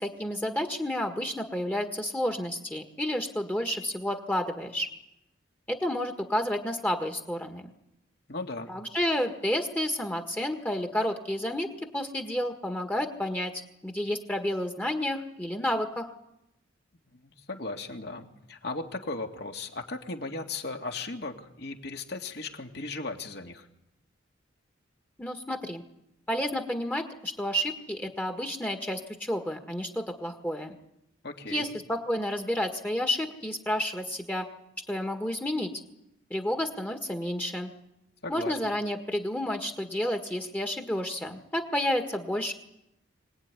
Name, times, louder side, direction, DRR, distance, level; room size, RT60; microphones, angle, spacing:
voice 1, 0.0-4.9 5.7-7.6 8.7-11.7 11.9-13.5 13.8-16.1 25.2-25.8 26.3-30.7 31.4-34.5 34.9-35.7 36.3-37.7 38.3-42.5, left 1 dB, 10° left, 5 dB, 1.6 m, -30 dB
voice 2, 8.3-8.7 17.1-23.7 31.2-31.7 38.2-38.6, left 3 dB, 55° left, 4 dB, 2.4 m, -37 dB
24.5 x 18.5 x 9.8 m, 0.85 s
head